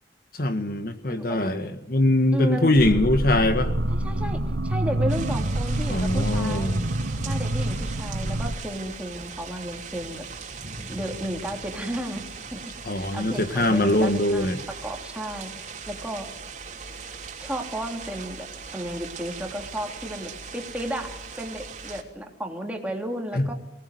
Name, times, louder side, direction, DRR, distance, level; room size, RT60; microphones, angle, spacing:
voice 1, 0.4-3.7 5.9-6.8 12.8-14.6 23.3-23.5, left 1 dB, 55° left, 9 dB, 1.6 m, -22 dB
voice 2, 1.1-1.7 2.3-2.7 3.9-6.8 7.3-10.2 10.9-12.2 12.5-12.6 12.9-15.5 15.9-16.3 17.4-23.5, right 1 dB, 5° right, 2 dB, 3.5 m, -33 dB
sound 1, 2.8-8.6, right 1 dB, 75° right, 1.3 m, -27 dB
sound 2, 5.1-22.0, right 5 dB, 40° right, 3.2 m, -39 dB
24.5 x 19.5 x 9.5 m, 0.98 s
head